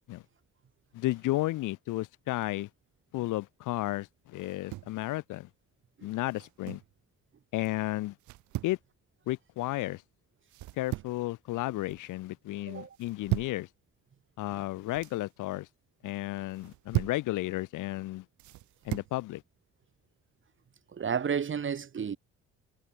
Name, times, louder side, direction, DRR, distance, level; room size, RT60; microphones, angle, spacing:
voice 1, 0.9-2.7 3.1-5.5 6.0-6.8 7.5-8.2 8.6-8.8 9.3-10.0 10.7-13.7 14.4-15.7 16.0-18.2 18.8-19.4, left 17 dB, 85° left, 0.9 m, -33 dB
sound 1, 4.4-5.0 6.3-6.9 8.2-8.8 10.5-11.3 11.6-12.1 13.0-13.6 14.7-15.2 16.5-17.3 18.4-19.2, right 18 dB, 75° right, 0.5 m, -36 dB
voice 2, 20.9-22.2, right 7 dB, 40° right, 1.8 m, -31 dB
cardioid pair, 90°, 30 cm